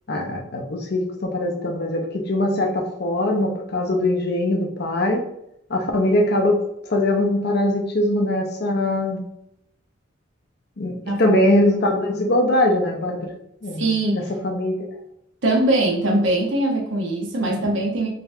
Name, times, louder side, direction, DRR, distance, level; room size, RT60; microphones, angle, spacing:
voice 1, 0.1-5.2 5.7-6.6 6.9-9.3 10.8-13.3 13.6-13.8 14.1-14.9 17.4-17.6, left 1 dB, 55° left, 3 dB, 0.6 m, -22 dB
voice 2, 11.0-11.4 13.8-14.3 15.4-18.1, right 1 dB, 65° right, -1 dB, 1.0 m, -21 dB
3.9 x 3.4 x 2.7 m, 0.78 s
head